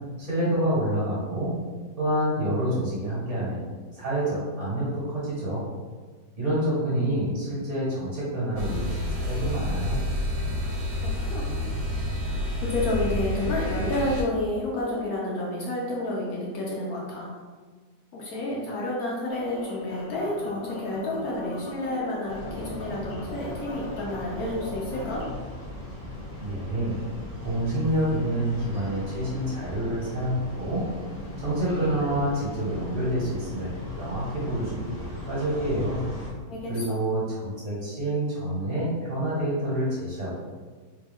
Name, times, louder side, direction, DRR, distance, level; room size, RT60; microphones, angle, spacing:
voice 1, 0.2-1.5 2.0-3.6 3.9-5.7 6.3-10.0 26.4-27.0 27.4-30.8 31.4-33.7 34.0-36.0 36.7-40.3, right 1 dB, 50° right, -7 dB, 1.3 m, -27 dB
sound 1, 8.6-14.2, left 1 dB, 80° right, 1.2 m, -29 dB
voice 2, 11.3-11.7 12.6-17.3 18.1-25.2 36.5-37.0, left 1 dB, 65° left, -4 dB, 1.0 m, -30 dB
sound 2, 19.3-25.3, left 1 dB, 90° left, 1.4 m, -39 dB
sound 3, 22.3-36.3, left 1 dB, 15° left, 0.7 m, -38 dB
3.4 x 2.2 x 3.4 m, 1.4 s
omnidirectional pair, 1.8 m